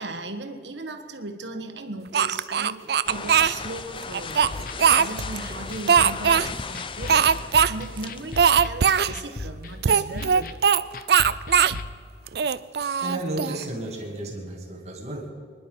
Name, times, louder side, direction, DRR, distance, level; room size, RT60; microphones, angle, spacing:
voice 1, 0.0-10.6 11.7-11.8, right 2 dB, 85° right, 8 dB, 1.4 m, -37 dB
Speech, 2.1-3.5 4.1-5.4 5.9-6.5 7.1-7.7 8.0-8.1 8.4-9.1 9.8-10.8 11.1-11.8 12.3-13.6, right 7 dB, 65° right, 0.4 m, -20 dB
sound 1, 3.0-8.5, left 4 dB, 30° left, 0.5 m, -36 dB
sound 2, 4.5-11.9, left 2 dB, 50° left, 0.8 m, -37 dB
voice 2, 12.7-15.3, right 1 dB, 35° right, 1 dB, 2.3 m, -33 dB
25.0 x 10.5 x 5.4 m, 2.2 s
head